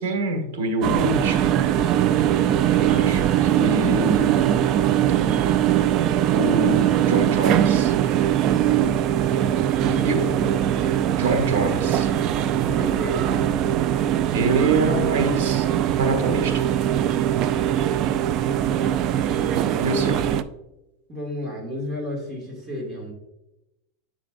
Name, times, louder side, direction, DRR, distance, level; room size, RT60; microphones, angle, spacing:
voice 1, 0.0-1.7 2.7-4.5 6.3-8.0 10.0-10.2 11.1-12.1 14.3-15.7 16.0-16.6 19.8-20.2, right 2 dB, 75° right, 4 dB, 1.4 m, -25 dB
sound 1, 0.8-20.4, right 11 dB, 45° right, 0.4 m, -21 dB
voice 2, 9.8-10.5 12.7-13.4 18.8-19.0 21.1-23.1, left 1 dB, 20° right, 0 dB, 2.2 m, -32 dB
8.3 x 6.1 x 2.5 m, 0.92 s
supercardioid pair, 135°, 0 cm